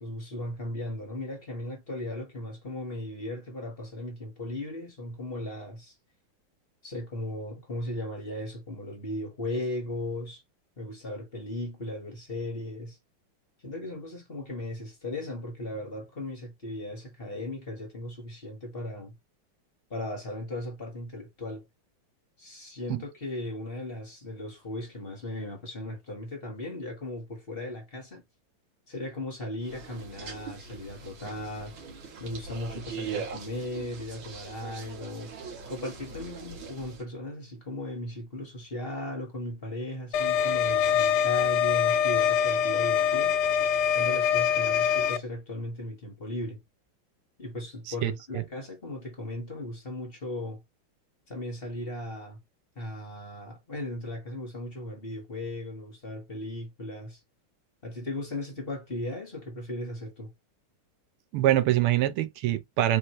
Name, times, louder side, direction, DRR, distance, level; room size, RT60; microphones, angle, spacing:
voice 1, 0.0-5.9 6.8-10.4 10.8-13.0 13.6-19.1 19.9-21.6 22.4-28.2 28.9-31.7 32.2-35.3 35.7-43.3 43.9-46.6 47.4-50.6 51.3-52.4 52.7-57.2 57.8-60.3, left 1 dB, 30° left, 1.5 m, -37 dB
sound 1, 29.6-37.0, right 5 dB, 70° right, 2.2 m, -41 dB
sound 2, 40.1-45.2, left 8 dB, 90° left, 1.5 m, -24 dB
voice 2, 48.0-48.4 61.3-63.0, right 13 dB, 85° right, 1.7 m, -25 dB
4.6 x 3.1 x 3.1 m
omnidirectional pair, 2.4 m